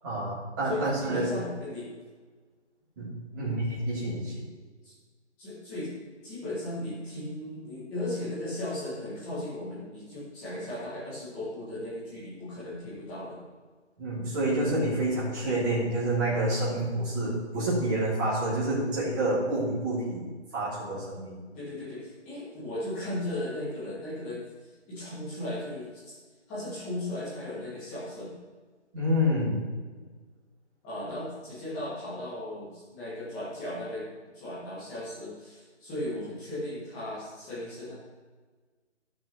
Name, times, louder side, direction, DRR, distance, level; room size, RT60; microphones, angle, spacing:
voice 1, 0.0-1.3 3.0-4.4 14.0-20.2 20.5-21.4 28.9-29.6, right 1 dB, 15° right, -9 dB, 3.3 m, -28 dB
voice 2, 0.6-1.9 3.3-3.5 4.8-4.9 5.4-5.9 6.2-13.4 21.5-24.4 24.9-26.1 26.5-28.3 30.8-34.1 34.3-37.9, left 1 dB, 5° left, -10 dB, 1.1 m, -36 dB
17.5 x 6.1 x 3.3 m, 1.4 s
figure-of-eight pair, 165°, 36 cm